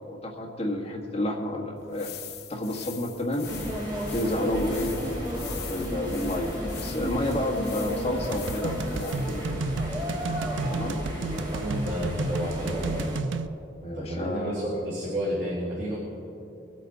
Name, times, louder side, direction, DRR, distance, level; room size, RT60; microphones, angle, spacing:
voice 1, 0.1-2.1 2.5-3.5 4.1-5.0 5.7-9.5 10.7-11.0 13.8-14.7, left 1 dB, 30° left, -1 dB, 1.5 m, -30 dB
sound 1, 1.8-9.5, left 10 dB, 55° left, 0.9 m, -44 dB
sound 2, 3.5-13.2, equal, 20° right, 2.1 m, -33 dB
sound 3, 8.3-13.5, right 3 dB, 70° right, 0.4 m, -32 dB
voice 2, 11.4-13.1 13.8-16.0, equal, 50° right, -9 dB, 3.0 m, -31 dB
21.5 x 8.5 x 4.0 m, 2.8 s
head